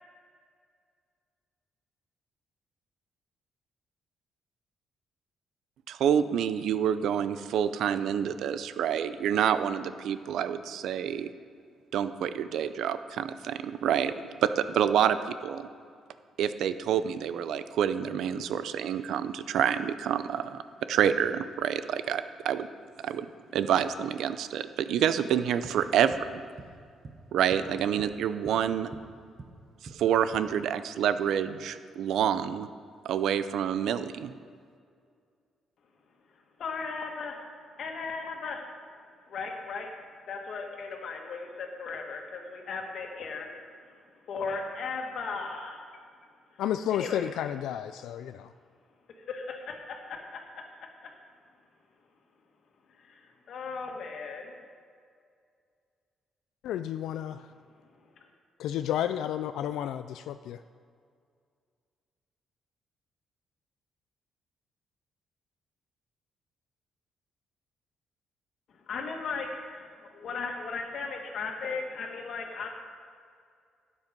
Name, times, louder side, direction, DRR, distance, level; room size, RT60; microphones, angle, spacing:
voice 1, 5.9-11.3 11.9-14.1 14.4-15.2 15.4-15.7 16.4-20.6 20.9-22.7 23.0-23.3 23.5-26.1 27.3-28.9 29.9-32.7 33.0-34.3, right 9 dB, 80° right, 12 dB, 0.6 m, -27 dB
sound 1, 25.6-26.3 26.6-26.8 27.0-28.2 28.4-29.6 29.9-30.4, right 3 dB, 40° right, 1.2 m, -46 dB
voice 2, 36.6-37.4 37.8-38.6 39.3-39.9 40.3-43.5 44.3-45.8 46.9-47.3 49.3-50.4 53.0-53.2 53.5-54.5 68.9-72.7, left 4 dB, 65° left, 2 dB, 1.9 m, -36 dB
voice 3, 46.6-48.5 56.6-57.5 58.6-60.6, left 10 dB, 85° left, 11 dB, 0.3 m, -31 dB
12.0 x 8.5 x 5.3 m, 2.2 s
cardioid pair, 90°, 0 cm